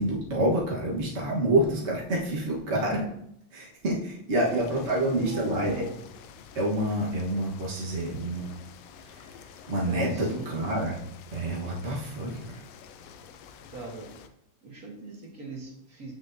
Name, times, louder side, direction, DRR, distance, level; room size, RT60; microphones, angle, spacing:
voice 1, 0.0-3.1 3.5-5.8 6.5-8.5 9.0-11.0 11.3-12.6, right 1 dB, 65° right, -4 dB, 0.6 m, -28 dB
sound 1, 4.3-14.3, left 7 dB, 80° left, 1.5 m, -49 dB
voice 2, 4.5-6.0 9.8-10.5 13.7-14.1 14.6-16.1, right 3 dB, 35° right, -1 dB, 1.6 m, -39 dB
9.7 x 6.3 x 2.7 m, 0.74 s
omnidirectional pair, 3.4 m